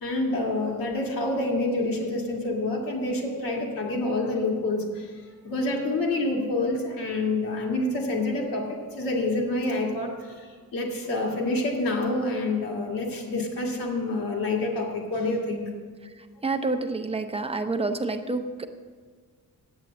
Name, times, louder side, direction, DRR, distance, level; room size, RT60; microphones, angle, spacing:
voice 1, 0.0-5.1 5.4-15.7, left 2 dB, 80° left, -1 dB, 1.9 m, -27 dB
voice 2, 16.4-18.7, right 3 dB, 15° right, 6 dB, 0.6 m, -28 dB
9.5 x 8.1 x 7.5 m, 1.6 s
wide cardioid pair, 155°, 34 cm